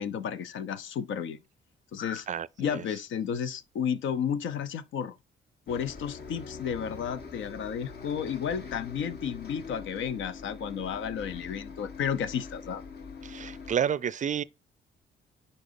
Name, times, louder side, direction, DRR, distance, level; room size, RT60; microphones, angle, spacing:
voice 1, 0.0-1.4 1.9-2.3 2.6-5.1 5.7-12.8, left 8 dB, 75° left, 0.8 m, -32 dB
voice 2, 2.3-2.8 13.2-14.4, right 8 dB, 40° right, 0.4 m, -30 dB
Bus, 5.7-13.8, left 5 dB, 55° left, 1.5 m, -43 dB
10.0 x 4.1 x 2.7 m
cardioid pair, 90°, 20 cm